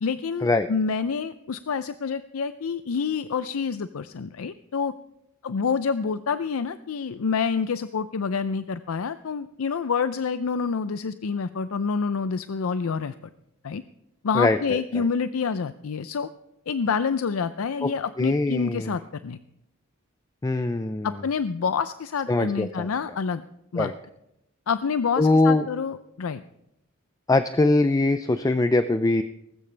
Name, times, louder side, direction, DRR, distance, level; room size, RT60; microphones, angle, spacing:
voice 1, 0.0-4.9 5.4-13.1 13.6-13.8 14.2-16.3 16.7-19.4 21.0-23.4 23.7-23.9 24.7-26.4, left 5 dB, 85° left, 13 dB, 0.5 m, -27 dB
voice 2, 14.3-15.1 17.8-17.9 18.2-19.0 20.4-21.1 22.3-22.9 23.8-23.9 25.2-25.6 27.3-29.2, left 2 dB, 15° left, 10 dB, 0.4 m, -22 dB
18.5 x 15.5 x 3.3 m, 0.82 s
head